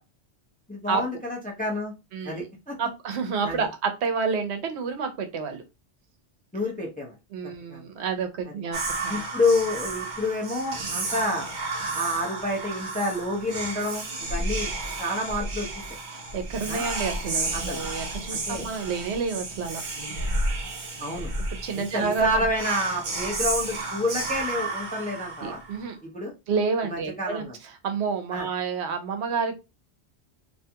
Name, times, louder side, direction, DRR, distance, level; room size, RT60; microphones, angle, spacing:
voice 1, 0.7-1.9 2.2-2.7 3.4-3.7 6.5-7.1 7.7-7.8 9.1-11.5 11.9-14.0 14.3-14.7 15.0-15.7 16.7-16.8 17.5-17.8 18.3-18.7 21.0-21.3 21.7-25.6 26.1-26.3 26.8-27.5 28.3-28.5, left 1 dB, 10° left, -2 dB, 0.4 m, -28 dB
voice 2, 2.1-2.5 2.8-5.6 7.3-9.2 16.1-19.8 21.6-22.3 25.4-26.0 26.5-27.5 27.8-29.6, right 5 dB, 80° right, 7 dB, 0.9 m, -29 dB
Whispering, 8.7-25.9, right 2 dB, 50° right, 0.7 m, -32 dB
2.5 x 2.3 x 2.7 m, 0.26 s
omnidirectional pair, 1.1 m